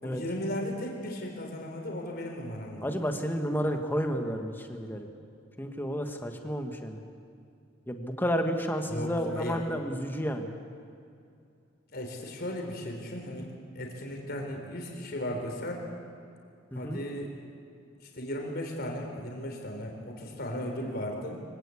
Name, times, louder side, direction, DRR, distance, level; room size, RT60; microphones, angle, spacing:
voice 1, 0.0-2.9 8.9-9.6 11.9-15.8 16.7-17.3 18.0-21.4, equal, 55° left, 2 dB, 3.9 m, -36 dB
voice 2, 2.8-5.1 5.6-7.0 7.9-10.5 16.7-17.0, equal, 10° left, 4 dB, 1.6 m, -31 dB
24.5 x 17.0 x 8.5 m, 2.5 s
head